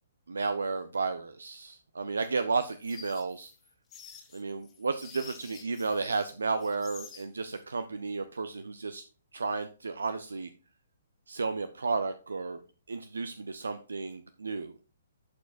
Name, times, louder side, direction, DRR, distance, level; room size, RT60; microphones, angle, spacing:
voice 1, 0.3-3.5 4.3-9.0 9.3-10.5 11.3-12.6 12.9-14.7, right 4 dB, 70° right, 11 dB, 0.6 m, -33 dB
sound 1, 2.2-6.3 6.6-7.6, left 7 dB, 20° left, 1.7 m, -50 dB
11.5 x 6.2 x 2.5 m, 0.36 s
figure-of-eight pair, 125°, 0 cm